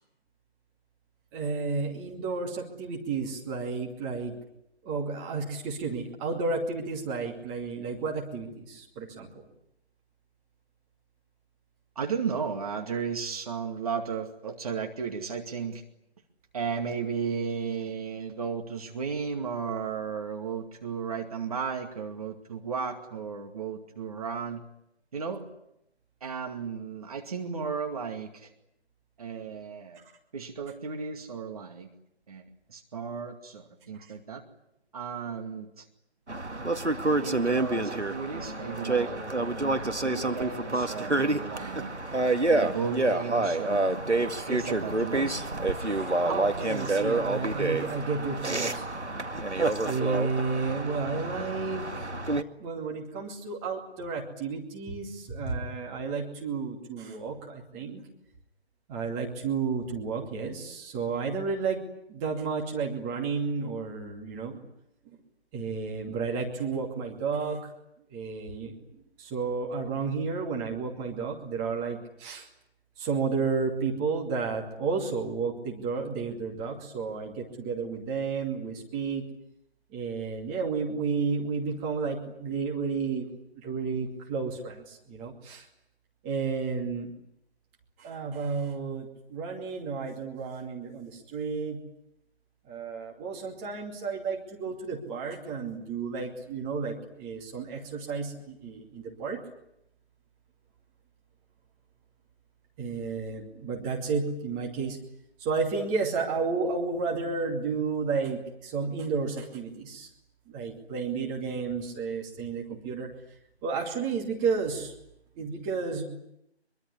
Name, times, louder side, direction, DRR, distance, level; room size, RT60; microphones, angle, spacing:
voice 1, 1.3-4.3 4.8-9.4 45.8-48.8 49.8-51.8 52.6-58.0 58.9-61.8 62.1-64.7 65.5-67.6 68.1-72.5 73.0-79.2 79.9-83.3 83.6-85.7 86.2-87.1 88.0-91.8 92.7-99.4 102.8-105.0 105.4-110.1 110.5-113.1 113.6-114.9 115.4-116.0, right 5 dB, 15° right, 0 dB, 2.5 m, -32 dB
voice 2, 12.0-15.8 16.5-24.6 25.1-25.5 26.2-28.5 29.2-30.0 30.3-31.9 32.3-32.4 32.7-34.4 34.9-35.9 37.2-39.2 40.0-41.9 42.5-44.0 44.5-45.3, right 6 dB, 35° right, 4 dB, 2.4 m, -34 dB
sound 1, 36.3-52.4, right 2 dB, 90° right, 2.2 m, -28 dB
24.5 x 23.5 x 9.9 m, 0.80 s
figure-of-eight pair, 150°, 33 cm